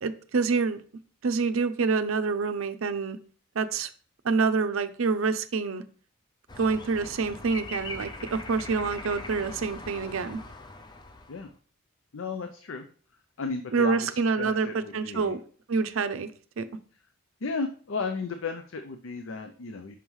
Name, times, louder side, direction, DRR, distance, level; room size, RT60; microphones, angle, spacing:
voice 1, 0.0-0.8 1.2-3.2 3.6-3.9 4.2-5.8 6.6-10.4 13.7-15.4 15.7-16.3 16.6-16.7, right 4 dB, 75° right, 10 dB, 0.5 m, -27 dB
sound 1, 6.5-11.5, left 2 dB, 20° left, 0.5 m, -41 dB
voice 2, 12.1-12.9 13.4-15.3 17.4-20.0, left 4 dB, 65° left, 6 dB, 0.5 m, -34 dB
5.8 x 3.1 x 5.4 m, 0.43 s
head